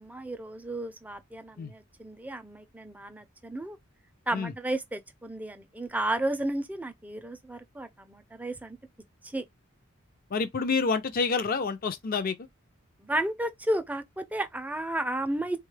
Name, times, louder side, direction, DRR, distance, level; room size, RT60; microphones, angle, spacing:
voice 1, 0.0-3.8 4.3-8.8 9.2-9.4 13.0-15.6, right 1 dB, 10° right, 0.4 m, -33 dB
voice 2, 10.3-12.4, left 4 dB, 45° left, 0.5 m, -28 dB
3.6 x 2.3 x 3.2 m
head